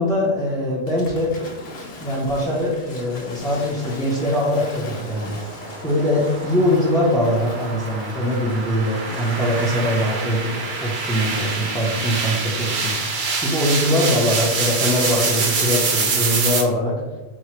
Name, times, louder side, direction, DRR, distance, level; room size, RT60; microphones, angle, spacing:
voice 1, 0.0-1.4 2.0-5.4 5.8-13.0 13.4-17.0, left 1 dB, 5° left, -6 dB, 0.4 m, -22 dB
Waves surf / Splash splatter, 0.9-10.1, left 2 dB, 70° left, 0.9 m, -39 dB
sound 1, 4.6-16.6, right 4 dB, 55° right, 0.6 m, -26 dB
4.6 x 2.0 x 2.9 m, 1.2 s
omnidirectional pair, 1.1 m